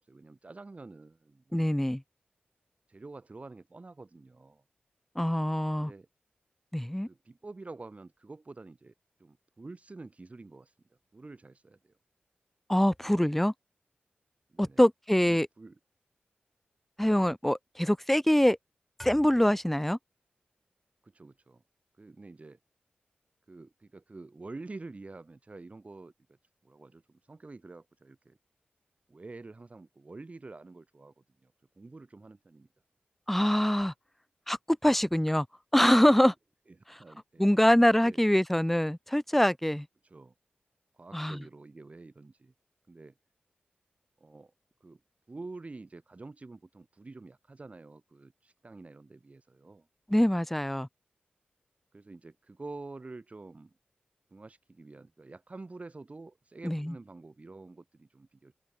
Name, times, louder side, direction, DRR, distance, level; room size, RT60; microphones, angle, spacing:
voice 1, 0.0-1.7 2.9-4.6 5.8-6.1 7.1-8.9 9.2-10.7 11.1-11.9 14.5-14.8 15.2-15.8 21.0-21.6 22.0-22.6 23.5-26.4 26.6-28.4 29.1-32.7 37.0-37.8 38.0-38.2 40.0-40.3 40.9-42.5 42.9-43.1 44.2-44.5 44.8-45.0 45.3-49.9 51.9-53.7 54.3-58.5, right 3 dB, 40° right, 1.4 m, -48 dB
voice 2, 1.5-2.0 5.2-5.9 6.7-7.1 12.7-13.5 14.6-15.5 17.0-18.6 19.0-20.0 33.3-33.9 34.5-35.5 35.7-36.3 37.4-39.9 41.1-41.4 50.1-50.9 56.6-56.9, equal, 5° left, 0.5 m, -24 dB
open air
cardioid pair, 55°, 4 cm